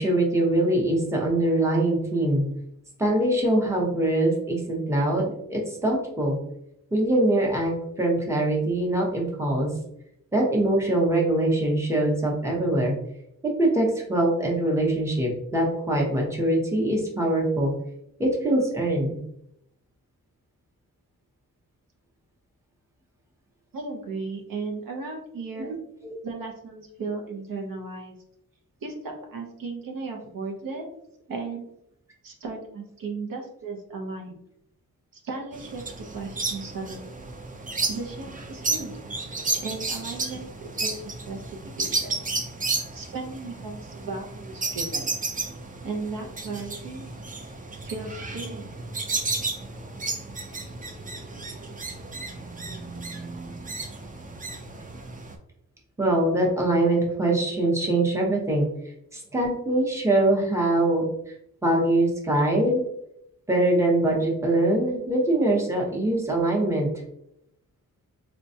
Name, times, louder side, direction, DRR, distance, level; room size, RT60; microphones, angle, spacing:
voice 1, 0.0-2.4 3.0-6.4 6.9-7.7 8.0-9.7 10.3-12.9 13.6-17.7 18.2-19.2 26.0-26.1 56.0-58.7 59.1-61.0 61.6-62.8 63.5-66.9, right 1 dB, 10° right, -2 dB, 0.8 m, -23 dB
voice 2, 23.7-25.7 26.2-28.1 28.8-30.9 31.3-31.7 32.2-34.4 35.1-35.8 36.1-37.1 37.9-38.9 39.6-42.1 42.9-45.1 45.8-47.1 47.8-48.7, right 3 dB, 75° right, 2 dB, 0.7 m, -35 dB
sound 1, 35.5-55.3, right 3 dB, 25° right, 0.4 m, -33 dB
4.2 x 2.2 x 2.7 m, 0.77 s
wide cardioid pair, 110°, 35 cm